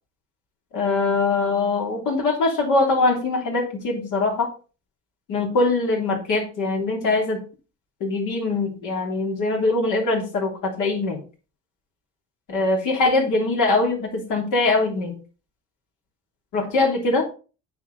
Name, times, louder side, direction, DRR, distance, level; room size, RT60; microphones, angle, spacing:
voice 1, 0.7-4.5 5.3-7.4 8.0-11.2 12.5-15.2 16.5-17.2, left 3 dB, 85° left, 0 dB, 3.2 m, -22 dB
9.2 x 6.1 x 4.1 m, 0.35 s
cardioid pair, 90°, 30 cm